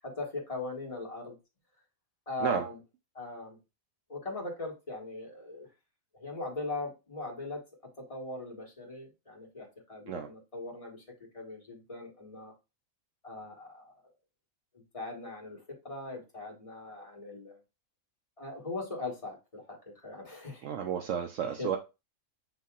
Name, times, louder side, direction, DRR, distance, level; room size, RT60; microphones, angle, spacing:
voice 1, 0.0-1.4 2.3-2.8 3.1-3.6 4.1-5.7 6.1-7.6 8.0-11.0 11.3-12.5 13.2-13.9 14.9-17.6 18.4-20.7 21.4-21.7, left 2 dB, 25° left, 1.4 m, -40 dB
voice 2, 20.6-21.8, right 8 dB, 70° right, 0.9 m, -32 dB
7.4 x 2.8 x 2.4 m
omnidirectional pair, 1.4 m